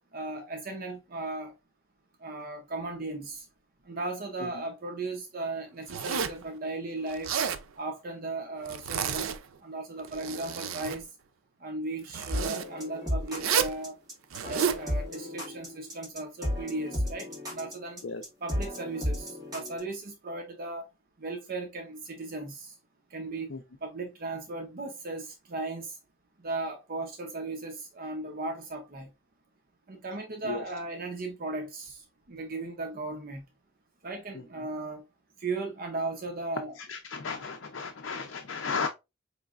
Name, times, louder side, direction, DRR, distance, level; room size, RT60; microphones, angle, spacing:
voice 1, 0.1-1.5 2.2-3.5 3.8-7.3 7.8-11.1 11.6-14.0 14.5-18.0 18.4-20.9 21.2-22.8 23.1-23.5 23.8-26.0 26.4-29.1 29.9-33.4 34.0-35.0 35.4-36.7, right 2 dB, 45° right, 0.7 m, -36 dB
Zipper (clothing), 5.9-6.4 7.1-7.6 8.7-9.4 10.0-11.0 12.1-12.7 13.4-13.8 14.3-14.8, right 7 dB, 85° right, 0.5 m, -30 dB
sound 1, 12.3-19.8, left 1 dB, 20° right, 2.0 m, -34 dB
voice 2, 36.8-38.9, left 4 dB, 65° left, 0.5 m, -35 dB
4.9 x 3.2 x 2.4 m
head